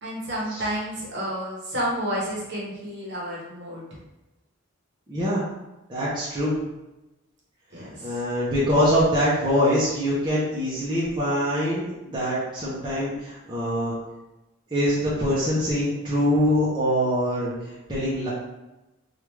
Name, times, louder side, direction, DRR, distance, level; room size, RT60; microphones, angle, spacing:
voice 1, 0.0-4.0 7.7-8.2, equal, 50° right, -5 dB, 0.9 m, -31 dB
voice 2, 5.1-5.4 5.9-6.6 8.0-13.9 14.7-18.3, equal, 20° right, -9 dB, 0.6 m, -24 dB
3.2 x 2.4 x 3.1 m, 1.0 s
head